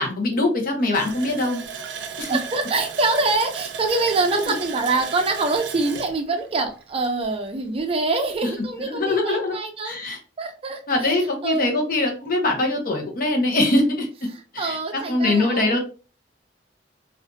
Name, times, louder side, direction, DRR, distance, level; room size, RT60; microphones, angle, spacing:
voice 1, 0.0-1.6 2.2-2.4 4.3-4.6 8.4-8.5 8.8-9.6 9.8-10.2 10.9-14.3 14.5-15.8, left 2 dB, 50° left, 2 dB, 0.8 m, -23 dB
Water tap faucet, 0.9-7.4 7.8-7.9 8.3-8.5, right 6 dB, 90° right, 0.4 m, -35 dB
voice 2, 2.3-10.0 10.4-11.8 14.3-15.8, right 3 dB, 30° right, 5 dB, 0.4 m, -25 dB
2.5 x 2.4 x 2.2 m, 0.35 s
head